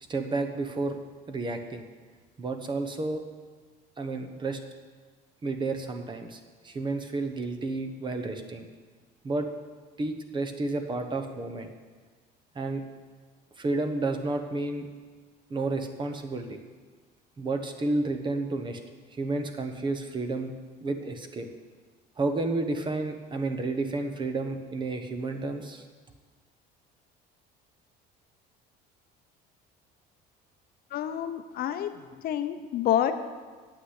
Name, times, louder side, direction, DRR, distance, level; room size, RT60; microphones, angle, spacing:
voice 1, 0.1-1.0 1.3-1.9 2.4-3.2 4.0-4.6 5.4-8.7 9.2-9.5 10.0-11.7 12.5-12.8 13.6-14.9 15.5-16.6 17.4-18.8 19.1-20.5 20.8-21.5 22.2-25.8, right 2 dB, 25° right, 6 dB, 1.1 m, -31 dB
voice 2, 30.9-33.1, left 11 dB, 50° left, 9 dB, 0.8 m, -28 dB
9.3 x 8.3 x 8.2 m, 1.4 s
cardioid pair, 140°, 19 cm